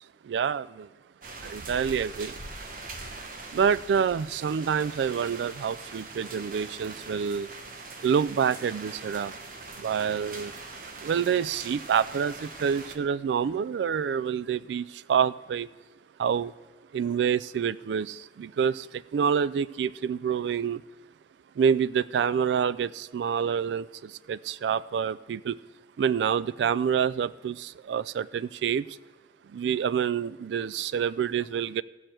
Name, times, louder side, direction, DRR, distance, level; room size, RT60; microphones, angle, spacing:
voice 1, 0.3-0.9 1.5-2.3 3.5-7.5 8.0-9.3 9.8-10.5 11.0-15.7 16.2-16.5 16.9-18.8 19.1-20.8 21.6-23.8 24.3-25.6 26.0-28.8 29.5-31.8, right 7 dB, 80° right, 18 dB, 0.3 m, -27 dB
sound 1, 1.2-13.0, right 3 dB, 50° right, 1.0 m, -42 dB
17.0 x 6.4 x 4.4 m, 1.3 s
head